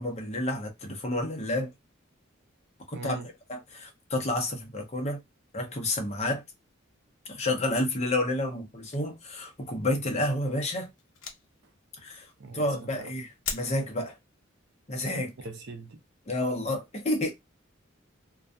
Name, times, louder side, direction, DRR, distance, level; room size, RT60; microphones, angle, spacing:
voice 1, 0.0-1.7 2.9-3.2 3.5-5.2 5.5-6.4 7.3-10.9 12.0-12.3 12.5-14.1 14.9-15.3 16.3-17.3, left 1 dB, 35° left, 0.7 m, -30 dB
voice 2, 2.9-3.3 12.4-13.1 15.4-16.0, right 3 dB, 60° right, 0.5 m, -41 dB
sound 1, 8.6-9.4 9.9-10.1 10.4-10.5 11.0-11.7 12.3-12.5 12.8-13.1 13.4-13.7, left 5 dB, 70° left, 0.6 m, -39 dB
2.5 x 2.3 x 2.2 m
head